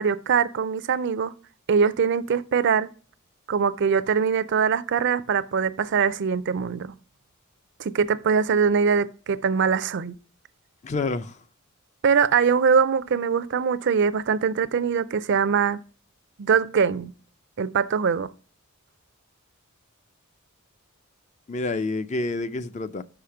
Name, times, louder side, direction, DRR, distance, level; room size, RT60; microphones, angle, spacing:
voice 1, 0.0-1.3 1.7-2.9 3.5-6.9 7.8-10.1 12.0-15.8 16.4-17.1 17.6-18.3, right 6 dB, 55° right, 0.4 m, -22 dB
voice 2, 10.8-11.4 21.5-23.0, left 3 dB, 35° left, 0.4 m, -28 dB
5.6 x 5.0 x 5.7 m
head